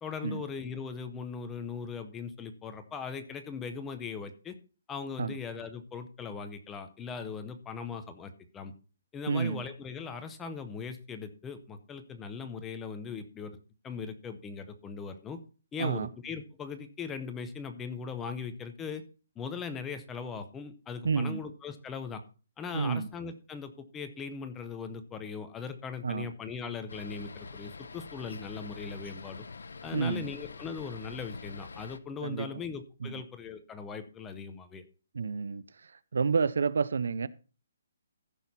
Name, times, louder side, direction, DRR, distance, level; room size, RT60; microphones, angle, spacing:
voice 1, 0.0-4.5 4.9-8.7 9.1-13.6 13.8-15.4 15.7-19.0 19.4-22.2 22.6-29.4 29.8-34.8, left 5 dB, 10° left, 0.7 m, -39 dB
voice 2, 9.3-9.6 15.8-16.1 21.0-21.4 22.7-23.1 26.0-26.3 29.9-30.3 32.2-32.5 33.0-33.1 35.1-35.6 36.1-37.3, right 5 dB, 65° right, 0.7 m, -29 dB
sound 1, 26.9-32.0, left 4 dB, 85° left, 0.9 m, -45 dB
14.5 x 6.3 x 4.1 m
hypercardioid pair, 175°, 0 cm